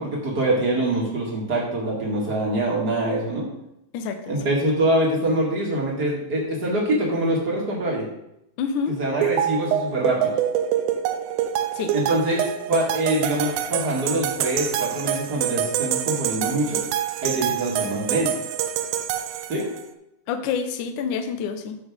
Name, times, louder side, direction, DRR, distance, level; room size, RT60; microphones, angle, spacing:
voice 1, 0.0-3.5 4.3-8.0 9.0-10.3 11.9-16.8 17.2-18.3 19.5-19.7, right 1 dB, 35° right, -3 dB, 1.6 m, -24 dB
voice 2, 3.9-4.4 8.6-9.0 11.7-11.9 20.3-21.8, left 6 dB, 85° left, 6 dB, 1.7 m, -27 dB
sound 1, 9.2-19.8, right 11 dB, 90° right, 2.9 m, -26 dB
14.5 x 5.4 x 3.6 m, 0.81 s
omnidirectional pair, 4.8 m